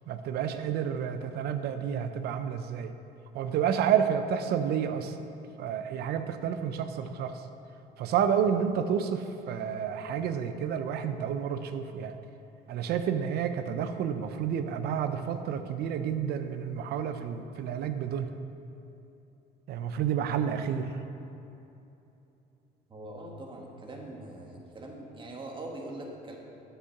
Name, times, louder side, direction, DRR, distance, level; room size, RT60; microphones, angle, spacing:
voice 1, 0.1-2.9 3.3-5.2 5.6-7.5 8.0-12.1 12.7-18.3 19.7-21.0, right 8 dB, 70° right, 9 dB, 0.6 m, -30 dB
voice 2, 22.9-26.4, right 1 dB, 30° right, 0 dB, 1.5 m, -42 dB
8.4 x 5.7 x 5.7 m, 2.9 s
cardioid pair, 110°, 17 cm